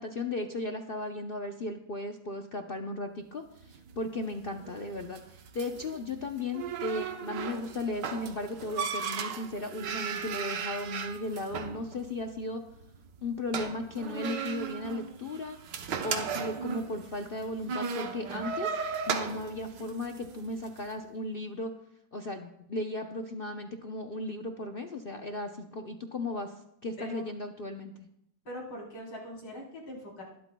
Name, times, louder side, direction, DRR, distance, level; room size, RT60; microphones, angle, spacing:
voice 1, 0.0-5.2 5.5-12.6 13.2-15.6 16.0-18.7 19.1-21.7 22.1-26.5 26.8-28.1, left 2 dB, 60° left, 4 dB, 0.6 m, -36 dB
sound 1, 3.6-20.8, right 6 dB, 75° right, 1.6 m, -37 dB
voice 2, 28.4-30.2, equal, 80° left, -3 dB, 4.5 m, -42 dB
21.0 x 12.0 x 2.3 m, 0.76 s
omnidirectional pair, 2.0 m